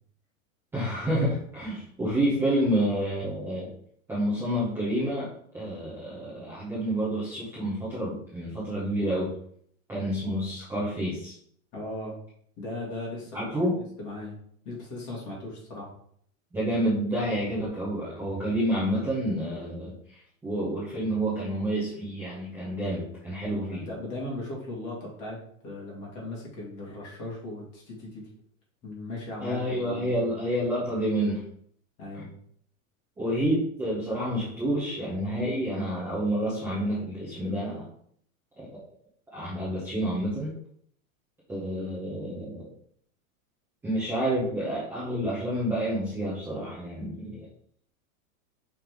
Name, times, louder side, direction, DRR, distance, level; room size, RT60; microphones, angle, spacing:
voice 1, 0.7-3.7 4.1-9.3 9.9-11.4 13.3-13.8 16.5-23.9 29.4-31.4 32.1-32.2 33.2-37.9 38.6-38.8 39.3-40.5 41.5-42.7 43.8-47.5, right 1 dB, 5° right, -10 dB, 0.9 m, -29 dB
voice 2, 11.7-12.1 12.6-13.5 14.0-14.4 14.7-15.9 23.4-28.2 28.8-30.2 32.0-32.3, left 2 dB, 25° left, -3 dB, 2.0 m, -38 dB
5.7 x 3.6 x 4.6 m, 0.64 s
supercardioid pair, 180°, 42 cm